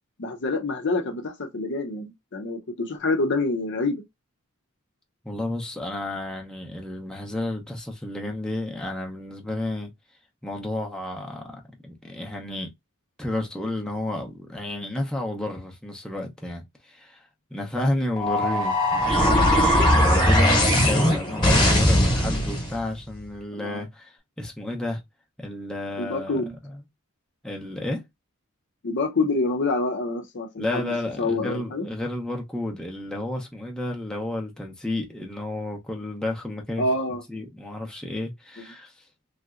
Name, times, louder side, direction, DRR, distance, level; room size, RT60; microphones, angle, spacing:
voice 1, 0.2-4.0 23.5-23.8 26.0-26.5 28.8-31.9 36.8-37.2 38.6-38.7, left 2 dB, 55° left, 0.6 m, -27 dB
voice 2, 5.2-9.9 10.4-12.7 13.2-25.0 25.4-26.7 27.4-28.0 30.6-36.8 37.3-39.0, left 1 dB, 5° left, 0.6 m, -31 dB
sound 1, 18.2-22.7, left 1 dB, 20° left, 1.2 m, -19 dB
3.2 x 2.8 x 2.4 m
head